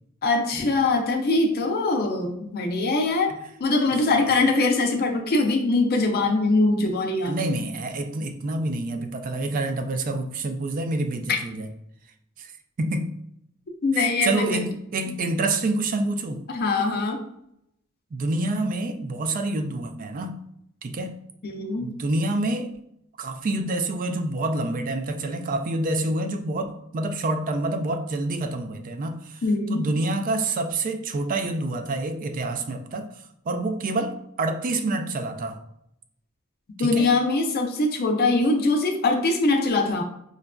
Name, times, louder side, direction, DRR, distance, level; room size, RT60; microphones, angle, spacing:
voice 1, 0.2-3.3 3.6-7.4 11.3-11.4 13.8-14.6 16.5-17.2 21.4-21.9 29.4-29.8 36.8-40.0, left 3 dB, 50° left, 3 dB, 0.5 m, -22 dB
voice 2, 7.2-11.7 12.4-12.5 12.8-13.1 13.9-16.5 18.1-20.4 20.8-21.2 21.8-22.7 23.2-29.4 29.7-33.1 33.4-35.6 36.8-37.1, right 2 dB, 40° right, 7 dB, 0.3 m, -27 dB
4.9 x 2.4 x 2.2 m, 0.75 s
head